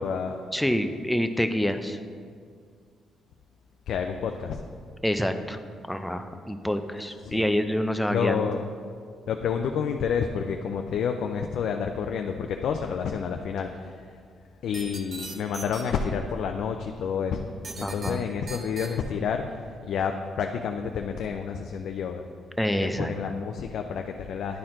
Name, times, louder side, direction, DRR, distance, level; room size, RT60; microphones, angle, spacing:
voice 1, 0.0-0.4 3.9-4.6 7.2-7.4 8.1-8.6 9.3-13.9 14.6-17.4 17.8-22.2 22.8-24.6, left 6 dB, 70° left, 4 dB, 0.4 m, -29 dB
voice 2, 0.5-2.0 5.0-5.6 5.9-8.4 17.8-18.2 22.6-23.1, equal, 5° left, 7 dB, 0.5 m, -27 dB
sound 1, 14.7-15.8 17.6-18.1 18.5-18.9, right 3 dB, 45° right, 1.0 m, -38 dB
10.5 x 4.3 x 3.8 m, 2.1 s
cardioid pair, 90°, 0 cm